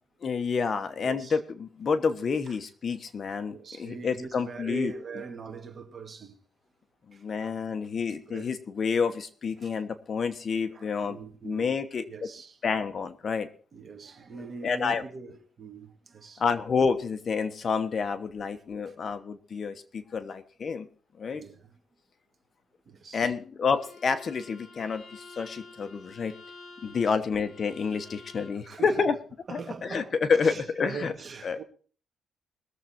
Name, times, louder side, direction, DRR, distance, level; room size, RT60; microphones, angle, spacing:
voice 1, 0.2-5.2 7.1-11.2 11.4-12.0 12.6-13.5 14.6-15.0 16.4-20.9 21.2-21.4 23.1-26.4 26.8-29.2 29.5-30.0 30.3-31.1 31.4-31.6, left 5 dB, 40° left, 1.1 m, -29 dB
voice 2, 1.0-1.4 2.5-2.6 3.5-6.4 7.1-7.5 8.1-8.5 9.6-9.7 10.7-11.8 12.1-12.6 13.7-16.4 18.3-18.5 18.9-19.0 21.3-21.7 22.9-23.3 26.9-27.0 28.6-29.0 29.5-31.6, right 5 dB, 40° right, 2.1 m, -42 dB
Bowed string instrument, 23.7-28.7, left 3 dB, 70° left, 5.1 m, -50 dB
21.0 x 7.5 x 4.4 m
cardioid pair, 130°, 0 cm